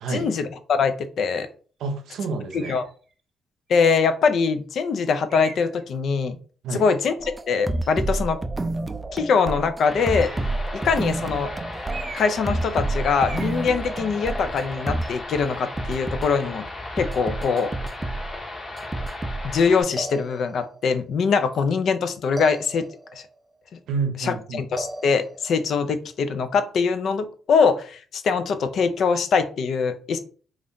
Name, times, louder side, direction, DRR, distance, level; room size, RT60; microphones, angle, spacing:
voice 1, 0.1-1.5 2.7-2.9 3.7-6.4 6.7-7.1 7.5-8.4 9.1-10.3 10.7-11.5 12.1-16.7 17.0-17.7 19.4-22.9 24.2-30.2, left 5 dB, 65° left, 9 dB, 0.4 m, -23 dB
voice 2, 1.8-2.8 6.6-6.9 23.9-24.6, right 4 dB, 80° right, 7 dB, 0.6 m, -29 dB
sound 1, 2.5-2.9 3.7-3.8 5.3-5.8 10.0-10.6 11.9-12.5 12.7-12.9 13.2-13.6, right 4 dB, 45° right, 0.7 m, -40 dB
sound 2, 7.2-15.2 15.8-16.2 17.0-18.4 18.8-19.6 20.0-20.8 22.4-23.2 24.8-25.6, right 2 dB, 20° right, 0.3 m, -30 dB
sound 3, 9.8-19.8, left 2 dB, 35° left, 0.9 m, -36 dB
2.6 x 2.4 x 3.5 m, 0.40 s
cardioid pair, 90°, 0 cm